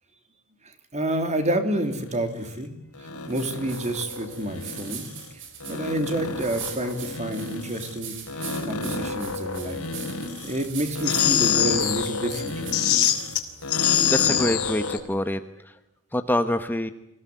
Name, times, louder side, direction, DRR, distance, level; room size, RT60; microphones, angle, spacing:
voice 1, 0.9-2.7 3.0-5.1 5.7-9.8 10.4-12.7, right 1 dB, 30° right, 7 dB, 3.3 m, -29 dB
sound 1, 1.8-2.2 3.0-5.3 5.6-8.0 8.3-10.7 10.9-15.0, left 7 dB, 70° left, 3.9 m, -27 dB
sound 2, 3.3-13.7, right 7 dB, 60° right, 5.0 m, -42 dB
voice 2, 14.1-15.8 16.1-16.9, left 1 dB, 10° left, 9 dB, 1.0 m, -26 dB
26.0 x 17.0 x 9.2 m, 0.90 s
head